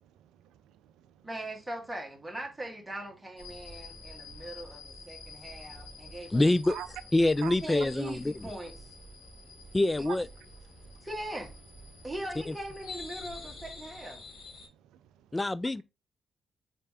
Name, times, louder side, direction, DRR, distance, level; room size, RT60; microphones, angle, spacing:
voice 1, 0.0-1.3 3.7-6.3 6.7-6.9 7.4-7.6 9.1-9.8 10.1-10.2 10.7-11.1 14.5-15.4, right 12 dB, 85° right, 0.4 m, -49 dB
voice 2, 1.2-6.4 7.6-8.7 11.0-11.5 12.0-14.2, right 1 dB, 15° right, 1.5 m, -40 dB
sound 1, 3.4-14.7, left 3 dB, 80° left, 1.9 m, -48 dB
voice 3, 6.3-6.8 7.1-8.5 9.7-10.3 12.5-12.6 15.3-15.8, left 2 dB, 20° left, 0.3 m, -26 dB
4.2 x 3.3 x 3.4 m
supercardioid pair, 45°, 0 cm